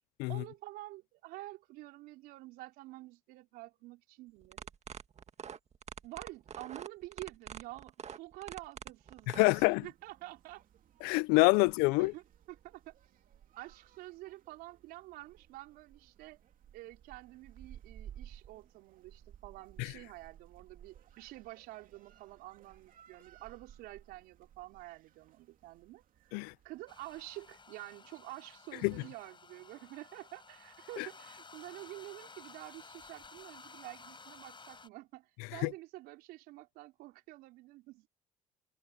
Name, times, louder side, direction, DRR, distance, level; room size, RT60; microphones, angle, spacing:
voice 1, 0.3-4.7 6.0-10.6 12.0-12.9 13.6-16.4 16.7-26.3 26.6-38.1, right 18 dB, 80° right, 4.6 m, -49 dB
sound 1, 4.4-9.5, right 7 dB, 45° right, 1.9 m, -45 dB
sound 2, 9.2-27.5, right 10 dB, 60° right, 2.9 m, -58 dB
voice 2, 9.3-9.8 11.0-12.1 19.8-19.9 26.3-26.5 28.8-28.9 31.0-31.1 35.6-35.7, left 26 dB, 80° left, 0.5 m, -26 dB
sound 3, 26.9-34.9, left 4 dB, 30° left, 4.8 m, -54 dB
supercardioid pair, 65°, 16 cm